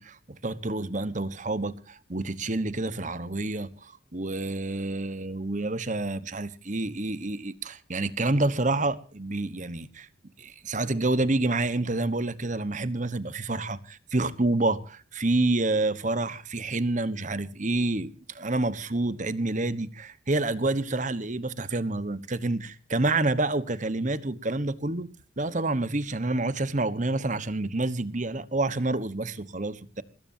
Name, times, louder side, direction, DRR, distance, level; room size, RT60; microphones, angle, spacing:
voice 1, 0.0-10.1 10.4-25.1 25.4-30.0, right 2 dB, 35° right, 1.2 m, -28 dB
23.5 x 20.5 x 2.8 m
head